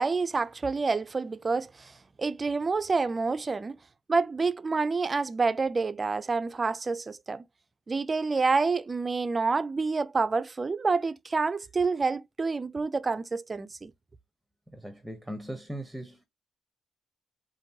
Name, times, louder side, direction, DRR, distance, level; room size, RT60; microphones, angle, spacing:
voice 1, 0.0-3.8 4.1-7.4 7.9-13.9, right 4 dB, 30° right, 0.3 m, -28 dB
voice 2, 14.7-16.2, right 1 dB, ahead, 0.8 m, -39 dB
5.1 x 2.6 x 2.8 m
cardioid pair, 90°, 0 cm